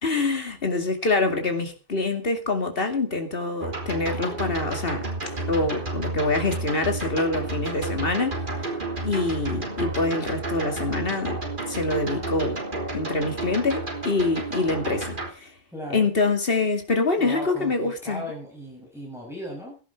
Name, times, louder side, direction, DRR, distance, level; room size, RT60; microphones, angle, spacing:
voice 1, 0.0-5.1 5.5-8.4 9.0-11.4 11.7-12.6 12.9-15.5 15.9-18.2, left 3 dB, 65° left, 2.6 m, -25 dB
sound 1, 3.6-15.3, right 2 dB, 55° right, 3.6 m, -31 dB
voice 2, 15.7-16.1 17.2-19.8, equal, ahead, 7.1 m, -37 dB
16.5 x 11.0 x 4.6 m
omnidirectional pair, 1.0 m